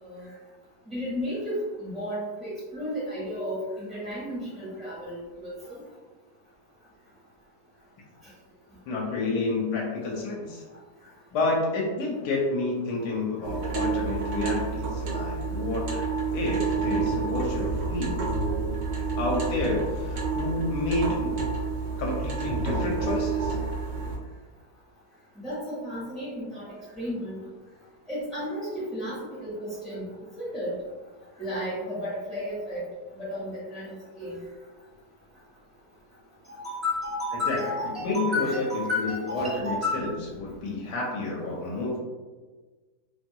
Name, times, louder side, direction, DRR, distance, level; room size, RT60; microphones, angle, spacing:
voice 1, 0.9-5.8 25.4-26.7 26.9-27.4 28.1-30.0 30.4-30.7 31.4-32.8 33.1-34.4 36.5-40.0, left 1 dB, ahead, -10 dB, 0.3 m, -32 dB
voice 2, 8.9-10.6 11.3-16.1 16.3-18.2 19.1-21.3 22.0-23.6 37.5-37.6 38.0-42.0, left 2 dB, 80° left, -2 dB, 1.1 m, -29 dB
sound 1, 13.4-24.2, right 4 dB, 70° right, 1.0 m, -29 dB
2.8 x 2.2 x 2.7 m, 1.3 s
omnidirectional pair, 1.8 m